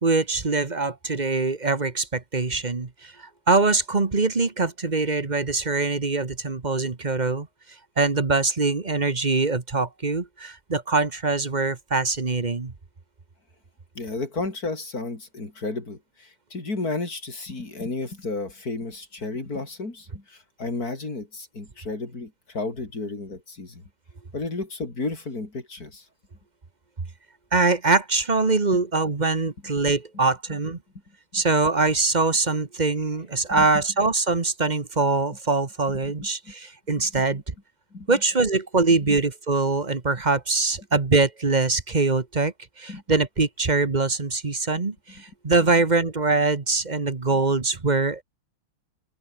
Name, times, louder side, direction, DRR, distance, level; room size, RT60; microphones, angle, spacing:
voice 1, 0.0-7.5 8.0-12.7 27.5-30.8 31.3-37.4 38.1-48.2, right 3 dB, 25° right, 1.2 m, -23 dB
voice 2, 14.0-23.8 24.3-26.1 28.7-28.8 31.3-31.4 33.5-33.7 36.0-36.1 36.5-36.6 37.0-37.4 37.9-38.2 39.1-39.2 42.9-43.0 45.2-45.3, left 3 dB, 40° left, 5.2 m, -33 dB
open air
omnidirectional pair, 2.4 m